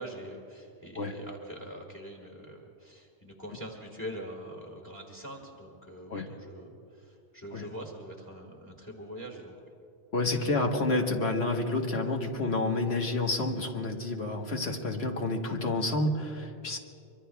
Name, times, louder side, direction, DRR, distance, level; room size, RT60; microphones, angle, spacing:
voice 1, 0.0-9.7, equal, 15° left, 0 dB, 1.6 m, -43 dB
voice 2, 10.1-16.8, left 2 dB, 65° left, 2 dB, 1.5 m, -29 dB
25.0 x 23.5 x 2.3 m, 2.6 s
omnidirectional pair, 1.1 m